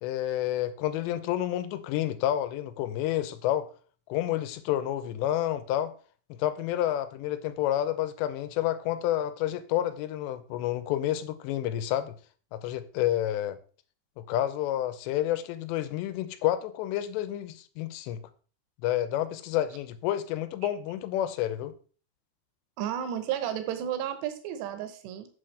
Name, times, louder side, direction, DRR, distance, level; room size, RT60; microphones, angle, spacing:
voice 1, 0.0-3.7 4.1-5.9 6.3-12.1 12.5-13.6 14.2-18.2 18.8-21.7, left 12 dB, 85° left, 2.9 m, -29 dB
voice 2, 22.8-25.3, right 10 dB, 80° right, 3.2 m, -32 dB
8.1 x 7.8 x 3.3 m
omnidirectional pair, 5.0 m